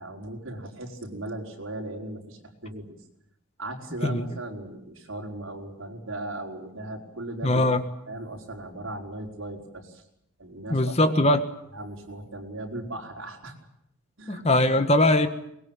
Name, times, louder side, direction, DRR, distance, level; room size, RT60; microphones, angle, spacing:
voice 1, 0.0-3.0 3.6-7.6 8.1-10.0 10.4-11.1 11.7-13.6 14.2-14.4, right 1 dB, 70° right, 4.9 m, -37 dB
voice 2, 7.4-7.8 10.7-11.4 14.3-15.3, left 1 dB, 30° left, 1.6 m, -21 dB
23.5 x 21.0 x 9.0 m
head